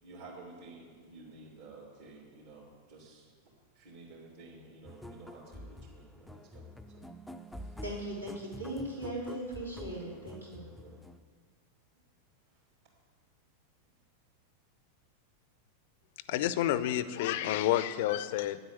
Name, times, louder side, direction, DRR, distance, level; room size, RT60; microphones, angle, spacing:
voice 1, 0.0-3.3 3.7-7.0 7.5-7.8 10.8-11.0 12.5-12.6, right 3 dB, 55° right, -6 dB, 2.9 m, -52 dB
sound 1, 4.9-11.2, left 1 dB, ahead, 0.5 m, -47 dB
voice 2, 7.8-10.7, right 1 dB, 85° right, -5 dB, 3.1 m, -39 dB
voice 3, 16.3-18.6, left 13 dB, 50° left, 15 dB, 0.5 m, -29 dB
9.6 x 8.0 x 8.4 m, 1.6 s
figure-of-eight pair, 90°, 0 cm